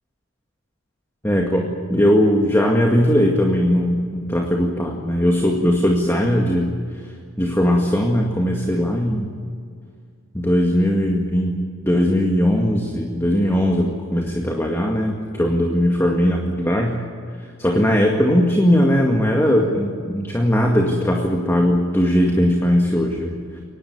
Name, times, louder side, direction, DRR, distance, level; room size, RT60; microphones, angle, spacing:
voice 1, 1.2-6.7 7.4-9.3 10.3-17.0 17.6-23.4, equal, 10° left, 1 dB, 2.0 m, -19 dB
24.5 x 19.0 x 9.6 m, 2.2 s
head